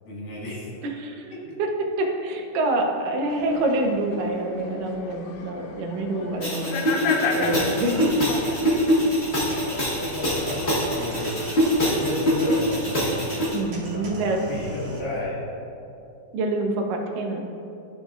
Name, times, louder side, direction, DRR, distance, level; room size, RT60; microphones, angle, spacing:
voice 1, 0.1-0.7 7.3-7.7 9.4-11.4 11.9-13.3 13.9-15.4, left 1 dB, 75° left, -6 dB, 3.2 m, -33 dB
voice 2, 0.8-1.2 1.6-6.8 7.3-8.3 13.5-14.4 16.3-17.4, right 2 dB, 85° right, 3 dB, 2.3 m, -26 dB
sound 1, 3.3-8.9, left 5 dB, 90° left, 2.3 m, -32 dB
sound 2, 6.4-13.5, equal, 45° left, 0.8 m, -24 dB
sound 3, 7.7-15.0, right 1 dB, 60° right, 2.1 m, -39 dB
12.5 x 5.1 x 2.4 m, 2.7 s
omnidirectional pair, 3.7 m